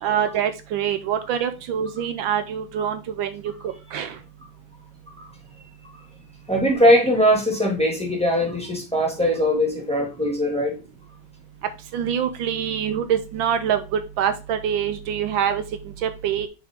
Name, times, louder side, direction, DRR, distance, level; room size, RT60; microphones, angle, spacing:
voice 1, 0.0-3.4 3.9-4.1 11.9-15.6 16.0-16.5, right 8 dB, 75° right, 9 dB, 1.4 m, -25 dB
voice 2, 6.5-10.8, equal, 5° left, -1 dB, 1.9 m, -20 dB
6.0 x 5.9 x 3.6 m, 0.29 s
omnidirectional pair, 2.2 m